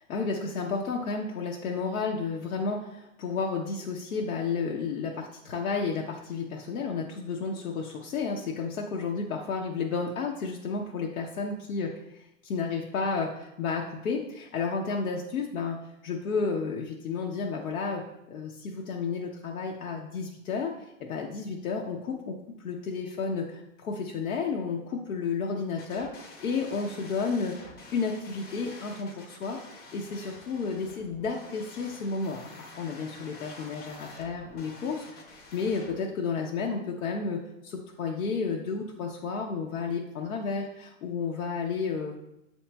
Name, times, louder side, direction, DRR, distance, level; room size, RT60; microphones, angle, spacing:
voice 1, 0.1-42.1, left 4 dB, 90° left, -1 dB, 0.7 m, -32 dB
sound 1, 25.8-36.0, left 3 dB, 25° left, 0.7 m, -48 dB
7.6 x 3.0 x 2.2 m, 0.85 s
hypercardioid pair, 140°, 41 cm